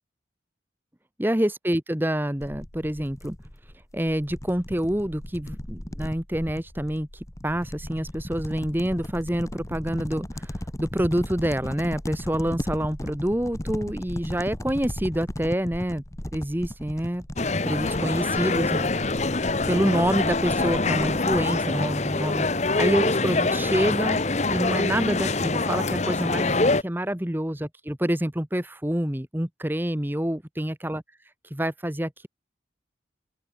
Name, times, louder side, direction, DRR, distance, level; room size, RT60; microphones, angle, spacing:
voice 1, 1.2-3.4 3.9-16.0 16.3-17.2 17.6-18.9 19.7-24.2 24.5-31.0 31.4-32.3, equal, 10° right, 1.1 m, -27 dB
sound 1, 2.4-21.7, left 1 dB, 15° left, 1.2 m, -36 dB
sound 2, 17.4-26.8, left 3 dB, 40° left, 1.0 m, -25 dB
open air
head